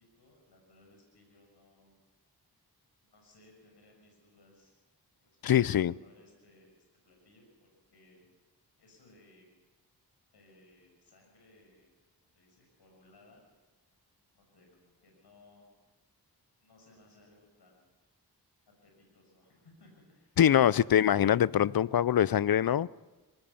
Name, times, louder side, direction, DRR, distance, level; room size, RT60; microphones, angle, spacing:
voice 1, 0.2-1.9 3.0-4.7 5.2-5.4 5.7-8.3 8.8-9.5 10.3-11.8 12.3-13.5 14.3-15.7 16.6-17.9 18.8-20.4, left 2 dB, 80° left, 0 dB, 6.7 m, -61 dB
voice 2, 5.4-5.9 20.4-22.9, left 10 dB, 60° left, 21 dB, 0.6 m, -24 dB
24.5 x 19.0 x 7.1 m, 1.2 s
wide cardioid pair, 70°, 39 cm